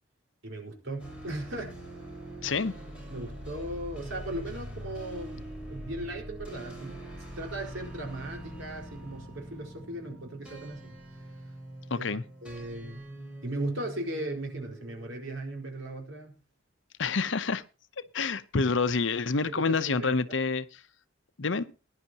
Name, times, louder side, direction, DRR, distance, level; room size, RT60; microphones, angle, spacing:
voice 1, 0.4-1.8 3.1-11.0 12.0-12.1 12.4-13.0 13.4-16.3 19.5-20.4, right 1 dB, 75° right, 4.7 m, -37 dB
sound 1, 1.0-16.0, right 1 dB, 5° right, 6.3 m, -44 dB
voice 2, 2.4-2.7 11.9-12.2 17.0-17.6 18.1-20.8 21.4-21.6, left 4 dB, 70° left, 0.8 m, -28 dB
20.5 x 10.5 x 2.9 m
head